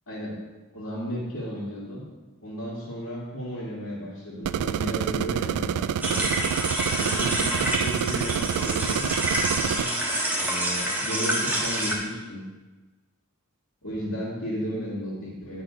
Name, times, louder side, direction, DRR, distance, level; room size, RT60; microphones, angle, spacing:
voice 1, 0.7-2.1 2.4-6.3 7.0-9.1 9.5-10.0 10.3-12.4 13.8-15.6, equal, 65° left, -10 dB, 2.0 m, -34 dB
sound 1, 4.4-9.9, right 9 dB, 80° right, 0.3 m, -28 dB
sound 2, 6.0-12.0, right 1 dB, 10° right, 1.2 m, -27 dB
9.2 x 4.1 x 5.0 m, 1.2 s
head